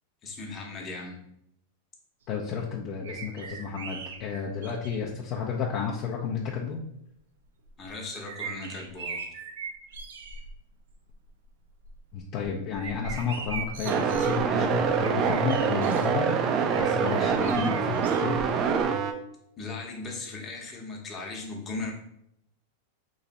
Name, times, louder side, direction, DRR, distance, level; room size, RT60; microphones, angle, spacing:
voice 1, 0.2-1.2 7.8-9.3 19.6-21.9, left 3 dB, 25° left, 0 dB, 0.9 m, -37 dB
voice 2, 2.3-6.8 12.1-16.4 16.7-18.4, left 6 dB, 40° left, -2 dB, 0.5 m, -32 dB
sound 1, 3.0-5.1 6.0-6.1 7.6-10.5 10.9-11.3 11.7-16.1 16.7-18.9 19.1-19.2, right 4 dB, 85° right, 0.5 m, -40 dB
sound 2, 13.8-19.1, right 6 dB, 35° right, 0.4 m, -25 dB
3.1 x 2.6 x 4.1 m, 0.76 s
supercardioid pair, 140°, 0 cm